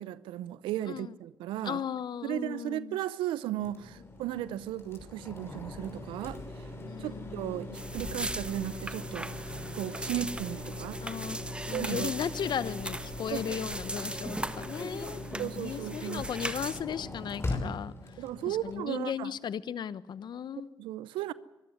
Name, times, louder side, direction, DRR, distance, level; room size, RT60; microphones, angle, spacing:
voice 1, 0.0-1.8 2.2-6.7 7.0-11.0 11.7-12.1 13.3-13.4 14.3-14.4 15.4-16.3 18.2-19.3 20.8-21.3, right 13 dB, 85° right, 0.7 m, -35 dB
voice 2, 1.6-3.0 6.8-7.8 11.0-11.4 11.7-17.9 18.5-20.7, left 8 dB, 60° left, 0.9 m, -36 dB
sound 1, 3.6-18.8, left 2 dB, 30° left, 5.6 m, -41 dB
sound 2, 7.7-16.8, right 1 dB, 10° right, 1.4 m, -39 dB
24.0 x 13.5 x 9.7 m
supercardioid pair, 60°, 8 cm